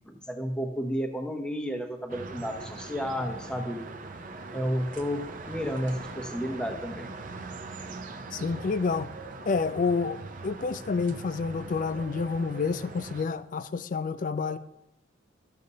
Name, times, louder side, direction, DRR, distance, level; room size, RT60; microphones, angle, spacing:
voice 1, 0.1-3.8 4.5-7.2, equal, 5° left, 0.7 m, -32 dB
sound 1, 2.1-13.3, right 3 dB, 45° right, 0.5 m, -41 dB
voice 2, 8.3-9.1 9.5-14.6, left 4 dB, 40° left, 0.3 m, -29 dB
12.5 x 6.4 x 2.7 m
head